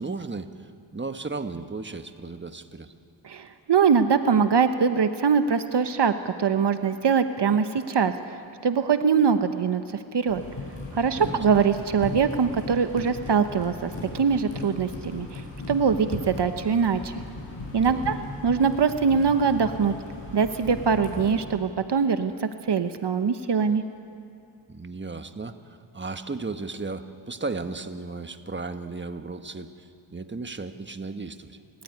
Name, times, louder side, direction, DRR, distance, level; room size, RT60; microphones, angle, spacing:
voice 1, 0.0-2.9 11.1-11.4 17.8-18.1 24.7-31.6, right 3 dB, 25° right, 8 dB, 1.3 m, -35 dB
voice 2, 3.2-9.8 10.1-10.4 10.9-15.4 15.7-17.2 17.7-19.9 20.3-23.8, right 6 dB, 65° right, 9 dB, 1.0 m, -23 dB
sound 1, 10.3-21.3, left 2 dB, 70° left, 6.4 m, -37 dB
29.5 x 14.0 x 9.8 m, 2.5 s
cardioid pair, 65°, 44 cm